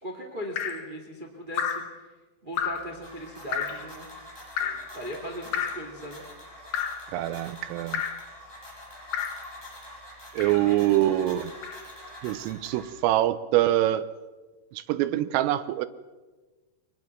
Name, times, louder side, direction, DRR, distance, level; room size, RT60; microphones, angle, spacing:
voice 1, 0.0-1.8 2.4-4.1 4.6-6.2 10.5-10.8, equal, 30° right, 1 dB, 0.9 m, -38 dB
Drip, 0.6-0.9 1.6-1.9 2.6-2.9 3.5-3.8 4.6-4.9 5.5-5.9 6.7-7.1 7.9-8.3 9.1-9.5 10.4-10.7 11.6-11.8, left 8 dB, 65° left, 2.4 m, -31 dB
sound 1, 2.6-13.2, equal, 5° left, 7.7 m, -46 dB
voice 2, 7.1-8.0 10.3-11.5 12.2-14.1 14.7-15.9, right 14 dB, 90° right, 12 dB, 3.5 m, -24 dB
24.0 x 20.5 x 6.0 m, 1.2 s
omnidirectional pair, 5.7 m